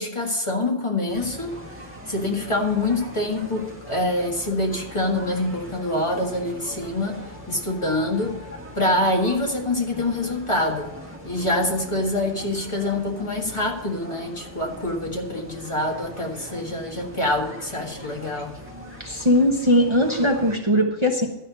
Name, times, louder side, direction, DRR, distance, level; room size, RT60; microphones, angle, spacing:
voice 1, 0.0-1.6 2.1-7.2 7.5-8.4 8.8-10.9 11.2-18.6, left 1 dB, 30° left, -1 dB, 1.9 m, -25 dB
sound 1, 1.1-20.5, equal, 10° right, 1.8 m, -41 dB
voice 2, 19.0-21.3, equal, 30° right, 1 dB, 1.2 m, -20 dB
12.5 x 5.7 x 8.2 m, 0.95 s
omnidirectional pair, 1.0 m